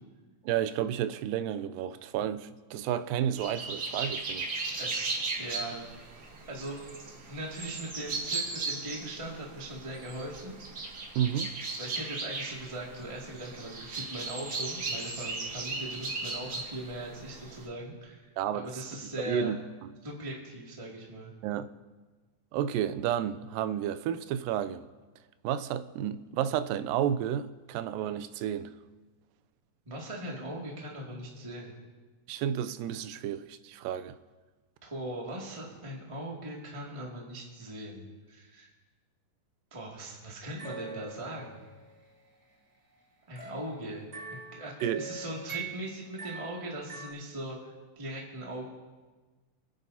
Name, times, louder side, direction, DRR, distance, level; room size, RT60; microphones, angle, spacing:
voice 1, 0.4-4.5 11.2-11.5 18.4-18.7 19.3-19.6 21.4-21.7 22.5-24.9 25.4-28.7 32.3-34.2 44.8-45.0, right 10 dB, 80° right, 2.2 m, -31 dB
sound 1, 3.4-17.7, right 3 dB, 55° right, 1.1 m, -37 dB
voice 2, 4.8-5.9 6.5-10.6 11.8-18.3 18.5-19.5 20.0-21.3 29.8-31.7 34.8-38.7 39.7-41.6 43.3-44.0 44.3-48.6, right 1 dB, 15° right, 1.5 m, -40 dB
sound 2, 40.4-41.9 43.4-47.1, right 4 dB, 35° right, 1.2 m, -43 dB
27.0 x 10.5 x 2.8 m
omnidirectional pair, 4.0 m